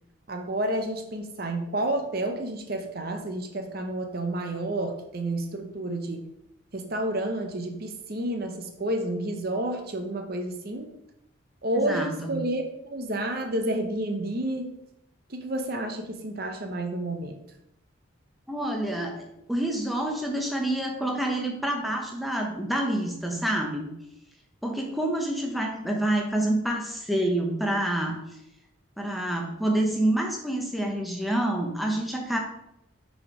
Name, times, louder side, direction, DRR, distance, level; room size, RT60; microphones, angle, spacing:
voice 1, 0.3-6.3 6.7-11.0 11.6-14.8 15.3-17.4, right 1 dB, 45° right, 5 dB, 0.7 m, -30 dB
voice 2, 11.8-12.3 18.5-23.9 24.6-28.2 29.0-32.4, right 1 dB, ahead, 0 dB, 0.8 m, -27 dB
6.0 x 4.3 x 4.8 m, 0.82 s
head